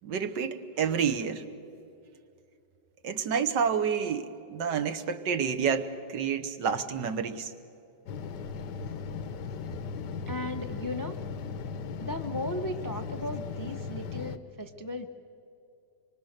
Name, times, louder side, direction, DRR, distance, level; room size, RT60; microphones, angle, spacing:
voice 1, 0.0-1.4 3.0-7.5, right 7 dB, 75° right, 9 dB, 1.7 m, -29 dB
sound 1, 8.1-14.4, left 5 dB, 75° left, 1.4 m, -37 dB
voice 2, 10.3-11.2 12.0-15.1, left 1 dB, 35° left, 6 dB, 0.3 m, -36 dB
26.0 x 23.5 x 6.6 m, 2.7 s
omnidirectional pair, 2.0 m